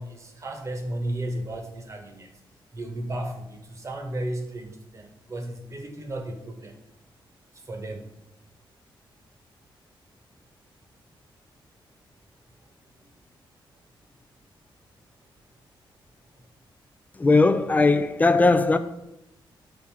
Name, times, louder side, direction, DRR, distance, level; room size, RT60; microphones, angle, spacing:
voice 1, 0.0-2.3 2.7-6.8 7.5-8.2 12.9-13.4 16.3-16.5, right 1 dB, 35° right, 1.1 m, -34 dB
voice 2, 17.2-18.8, left 3 dB, 20° left, 0.5 m, -19 dB
7.5 x 4.7 x 4.6 m
wide cardioid pair, 130°, 9 cm